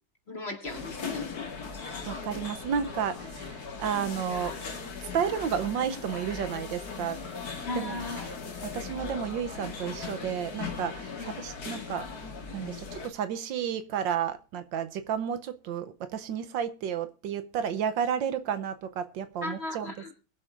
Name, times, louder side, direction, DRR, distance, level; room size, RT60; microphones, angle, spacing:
voice 1, 0.3-1.6 7.7-8.3 11.2-11.3 19.4-20.1, left 2 dB, 30° left, 4 dB, 2.5 m, -36 dB
sound 1, 0.6-13.1, left 5 dB, 50° left, 2.1 m, -39 dB
voice 2, 2.0-4.5 5.0-7.2 7.7-8.0 8.6-12.1 12.5-20.1, right 8 dB, 75° right, 11 dB, 1.5 m, -32 dB
21.5 x 7.8 x 2.5 m, 0.38 s
omnidirectional pair, 2.1 m